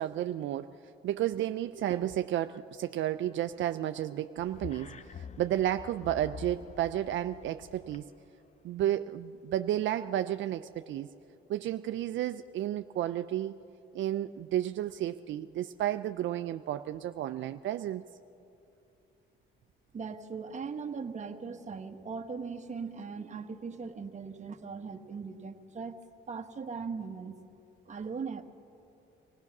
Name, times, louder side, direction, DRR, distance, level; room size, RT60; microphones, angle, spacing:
voice 1, 0.0-8.1 8.6-11.1 11.5-13.5 13.9-18.0, right 12 dB, 70° right, 9 dB, 0.5 m, -32 dB
sound 1, 4.4-8.0, left 7 dB, 35° left, 0.6 m, -47 dB
voice 2, 19.9-26.0 26.3-27.4 27.8-28.4, right 5 dB, 35° right, 5 dB, 1.3 m, -39 dB
25.0 x 17.0 x 6.0 m, 2.8 s
cardioid pair, 90°, 20 cm